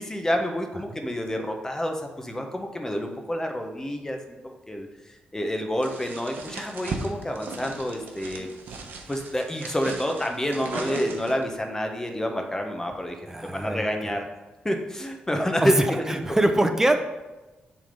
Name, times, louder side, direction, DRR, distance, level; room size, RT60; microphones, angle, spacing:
voice 1, 0.0-4.9 5.3-8.8 9.1-13.2 13.4-14.2 14.6-16.0, equal, 15° left, 3 dB, 1.0 m, -28 dB
sound 1, 5.8-11.5, right 4 dB, 70° right, 0.9 m, -37 dB
voice 2, 13.3-14.1 15.6-17.0, right 1 dB, 15° right, 7 dB, 0.7 m, -24 dB
7.4 x 3.6 x 5.3 m, 1.1 s
cardioid pair, 75°, 3 cm